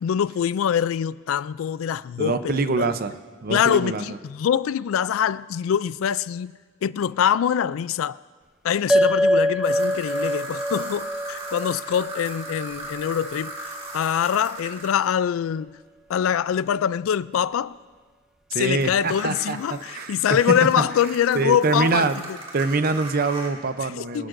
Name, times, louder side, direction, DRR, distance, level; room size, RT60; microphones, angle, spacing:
voice 1, 0.0-2.9 3.5-6.5 6.8-8.2 8.6-15.8 16.1-17.8 18.5-22.1 23.8-24.3, left 9 dB, 90° left, 0.3 m, -24 dB
voice 2, 2.2-3.1 3.4-4.2 18.5-20.1 21.3-22.2 22.5-24.3, right 3 dB, 45° right, 0.6 m, -24 dB
sound 1, 8.9-13.6, equal, 5° right, 0.4 m, -25 dB
sound 2, 9.6-15.1 18.8-23.5, right 1 dB, 30° right, 2.6 m, -38 dB
25.0 x 12.5 x 2.6 m
head